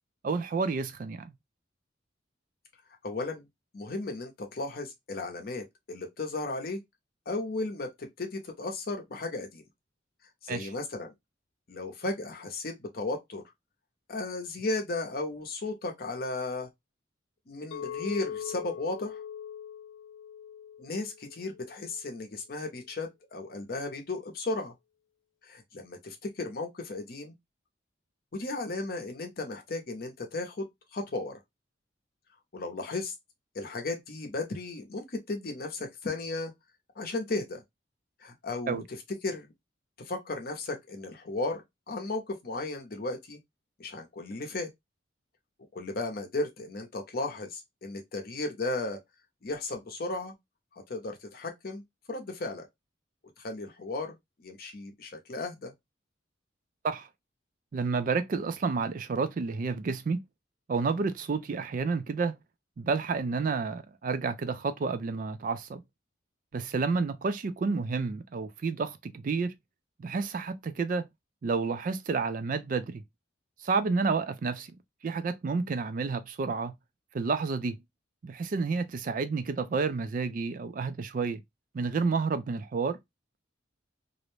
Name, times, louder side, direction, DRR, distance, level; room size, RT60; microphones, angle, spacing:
voice 1, 0.2-1.3 10.5-10.7 38.7-38.8 56.8-57.1 57.7-60.2 60.7-62.4 62.8-65.8 66.5-69.6 70.0-71.1 71.4-73.0 73.6-74.8 75.0-76.7 77.1-77.8 78.2-81.4 81.7-83.0, right 4 dB, 45° right, 0.3 m, -30 dB
voice 2, 3.0-3.4 3.7-6.8 7.3-9.6 10.4-11.1 11.7-13.4 14.1-16.7 17.5-19.2 20.8-24.7 25.4-27.3 28.3-30.7 30.9-31.4 32.5-33.1 33.5-36.5 37.0-37.6 38.2-38.8 39.2-39.5 40.0-43.4 43.8-44.7 45.7-49.0 49.4-50.3 50.9-51.8 52.1-52.7 53.4-55.7, left 2 dB, 50° left, 0.6 m, -35 dB
Chink clink, 17.7-22.0, left 8 dB, 90° left, 0.3 m, -41 dB
2.5 x 2.1 x 3.0 m
head